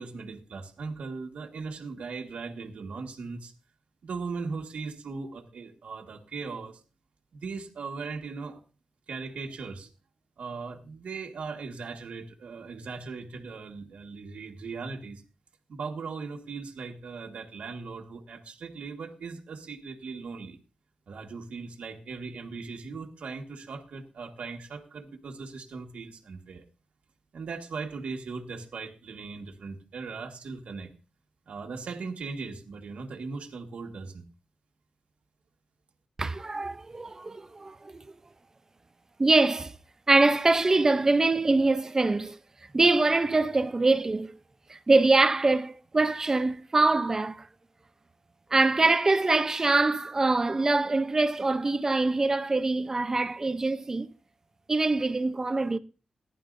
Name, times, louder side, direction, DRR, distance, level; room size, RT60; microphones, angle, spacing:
voice 1, 0.0-3.5 4.0-6.8 7.3-8.6 9.1-9.9 10.4-15.2 15.7-20.6 21.1-26.6 27.3-30.9 31.5-34.2, right 4 dB, 80° right, 1.7 m, -38 dB
voice 2, 36.2-38.0 39.2-39.8 40.1-42.4 42.7-44.3 44.7-47.5 48.5-54.1 54.7-55.8, right 3 dB, 25° right, 0.6 m, -24 dB
18.5 x 11.0 x 2.6 m
wide cardioid pair, 140°, 2 cm